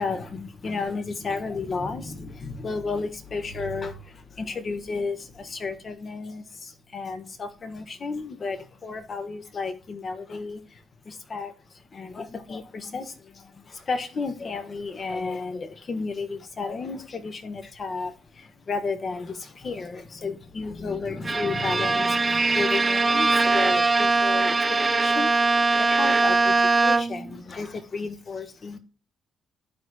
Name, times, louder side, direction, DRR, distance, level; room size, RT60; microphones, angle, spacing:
voice 1, 0.0-25.4 25.8-28.8, left 4 dB, 45° left, 1.3 m, -33 dB
Bowed string instrument, 21.2-27.3, right 3 dB, 30° right, 0.3 m, -21 dB
13.0 x 4.8 x 2.2 m
supercardioid pair, 60°, 0 cm